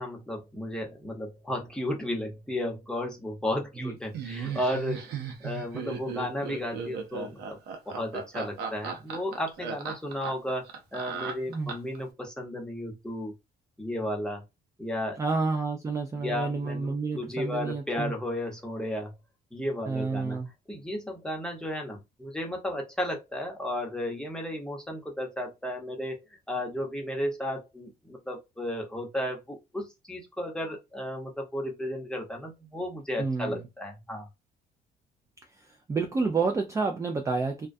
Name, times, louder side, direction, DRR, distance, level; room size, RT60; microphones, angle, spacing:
voice 1, 0.0-7.6 7.9-13.3 13.8-14.4 14.8-15.2 16.2-19.1 19.5-20.4 20.7-34.3, left 1 dB, 5° left, 0.9 m, -34 dB
Laughter, 4.1-12.0, right 6 dB, 80° right, 0.7 m, -36 dB
voice 2, 15.2-18.1 19.9-20.5 33.2-33.6 35.6-37.7, right 4 dB, 20° right, 0.3 m, -29 dB
2.2 x 2.2 x 2.5 m
cardioid pair, 110°, 17 cm